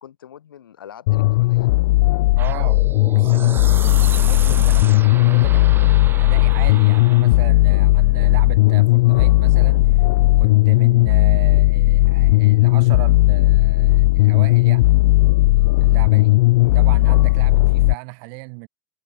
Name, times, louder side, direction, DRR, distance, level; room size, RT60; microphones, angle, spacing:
voice 1, 0.0-1.7 3.5-3.8 15.5-16.4, left 10 dB, 80° left, 6.9 m, -45 dB
sound 1, 1.1-17.9, left 20 dB, 60° left, 0.6 m, -15 dB
sound 2, 2.4-7.4, right 7 dB, 20° right, 1.2 m, -34 dB
voice 2, 2.4-2.8 3.1-10.0 10.4-14.9 15.8-16.4 16.7-18.7, right 40 dB or more, 50° right, 3.1 m, -36 dB
hypercardioid pair, 120°, 11 cm